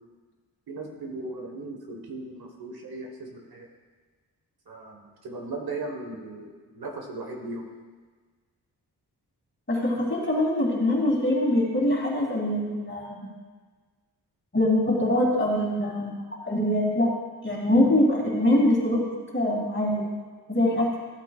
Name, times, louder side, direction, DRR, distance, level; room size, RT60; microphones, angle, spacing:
voice 1, 0.7-3.7 4.7-7.7, right 2 dB, 65° right, 2 dB, 1.5 m, -37 dB
voice 2, 9.7-13.2 14.5-17.1 17.4-19.0 19.3-20.0 20.5-20.9, left 1 dB, 30° left, -3 dB, 2.9 m, -23 dB
14.5 x 8.1 x 2.4 m, 1.5 s
cardioid pair, 85°, 39 cm